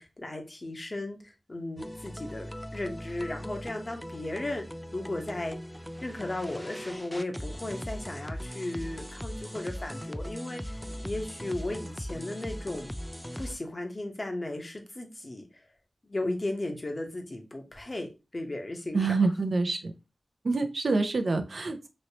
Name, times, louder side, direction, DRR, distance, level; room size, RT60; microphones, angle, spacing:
voice 1, 0.0-4.6 4.9-5.6 6.0-10.8 11.0-12.9 13.4-15.5 16.0-19.3, left 2 dB, 40° left, 4 dB, 0.9 m, -35 dB
sound 1, 1.8-13.5, equal, 5° left, 0.3 m, -39 dB
voice 2, 18.9-19.9 20.4-21.9, right 3 dB, 70° right, 7 dB, 0.5 m, -27 dB
3.1 x 2.8 x 2.7 m, 0.27 s
cardioid pair, 45°, 0 cm